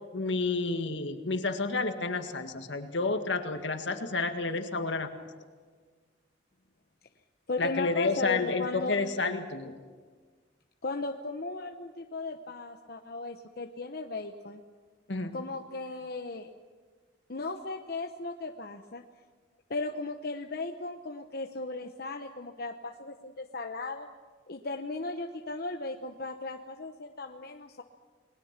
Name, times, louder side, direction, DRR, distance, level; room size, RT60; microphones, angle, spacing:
voice 1, 0.1-5.1 7.6-9.7 15.1-15.4, left 3 dB, 75° left, 7 dB, 1.9 m, -30 dB
voice 2, 7.5-9.0 10.8-14.6 15.3-16.5 17.3-19.0 19.7-24.1 24.5-27.8, left 3 dB, 55° left, 4 dB, 1.0 m, -36 dB
29.5 x 21.0 x 6.0 m, 1.5 s
head